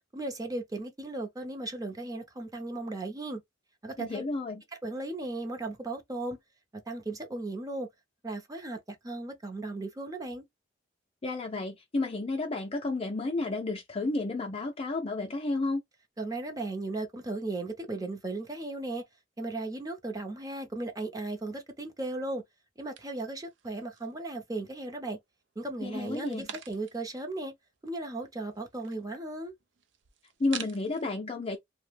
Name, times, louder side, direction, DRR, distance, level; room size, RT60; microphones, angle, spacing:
voice 1, 0.1-3.4 3.8-4.2 4.8-6.4 6.9-7.9 8.2-10.4 16.2-19.0 19.4-22.4 22.8-25.2 25.6-27.5 27.8-29.5, right 2 dB, 20° right, 0.6 m, -36 dB
voice 2, 4.0-4.6 11.2-15.8 25.8-26.5 30.4-31.6, left 2 dB, 30° left, 0.4 m, -31 dB
sound 1, 23.0-24.3 24.6-25.3 25.8-27.1 27.5-27.6 27.8-31.0, right 8 dB, 75° right, 0.5 m, -47 dB
2.7 x 2.1 x 3.2 m
head